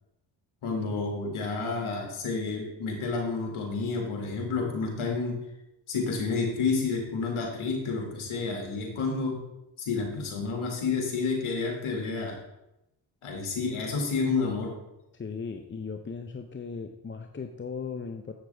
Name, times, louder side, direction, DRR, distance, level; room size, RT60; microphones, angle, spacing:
voice 1, 0.6-5.4 5.9-9.4 9.8-12.4 13.2-14.7, left 4 dB, 75° left, 1 dB, 2.1 m, -30 dB
voice 2, 15.1-18.3, left 5 dB, 25° left, 5 dB, 0.6 m, -37 dB
7.8 x 6.7 x 3.4 m, 0.89 s
supercardioid pair, 55°, 49 cm